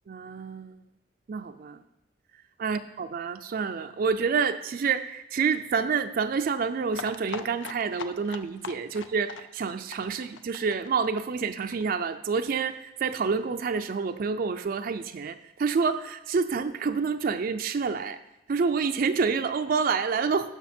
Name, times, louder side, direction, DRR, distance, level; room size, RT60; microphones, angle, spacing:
voice 1, 0.1-0.8 1.3-1.8 2.6-18.2 18.5-20.5, right 5 dB, 50° right, 9 dB, 0.4 m, -28 dB
sound 1, 6.9-12.5 12.7-12.8 13.1-13.2 13.4-13.5, left 5 dB, 85° left, 0.5 m, -41 dB
12.0 x 5.9 x 4.3 m, 0.92 s
head